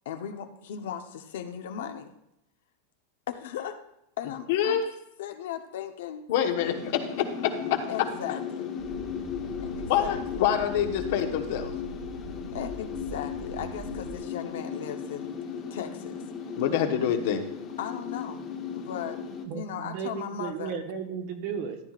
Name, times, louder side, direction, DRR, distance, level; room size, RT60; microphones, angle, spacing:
voice 1, 0.0-2.1 3.3-3.8 4.2-6.2 7.9-8.7 9.6-10.5 12.5-15.4 15.7-16.2 17.8-18.5 18.7-19.2 19.5-20.7, left 9 dB, 75° left, 7 dB, 1.0 m, -37 dB
voice 2, 4.5-4.8 6.3-7.8 9.9-11.7 16.6-17.4, left 9 dB, 55° left, 6 dB, 1.2 m, -26 dB
sound 1, 6.5-19.4, left 6 dB, 25° left, 1.2 m, -36 dB
sound 2, 8.8-14.2, right 3 dB, 65° right, 2.3 m, -42 dB
voice 3, 19.4-21.8, right 7 dB, 45° right, 6 dB, 1.2 m, -34 dB
13.5 x 10.0 x 2.5 m, 0.82 s
supercardioid pair, 165°, 0 cm